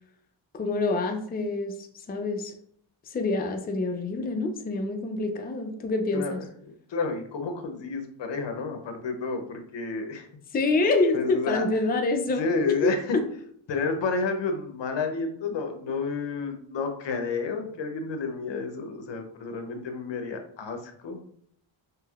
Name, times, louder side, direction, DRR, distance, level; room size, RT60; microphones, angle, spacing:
voice 1, 0.5-2.5 3.1-6.4 10.5-12.5 12.8-12.9, left 3 dB, 20° left, 5 dB, 0.4 m, -26 dB
voice 2, 6.1-10.3 11.1-11.6 12.4-13.2 13.7-21.3, left 4 dB, 65° left, 5 dB, 0.7 m, -30 dB
3.2 x 2.7 x 2.3 m, 0.63 s
cardioid pair, 70°, 48 cm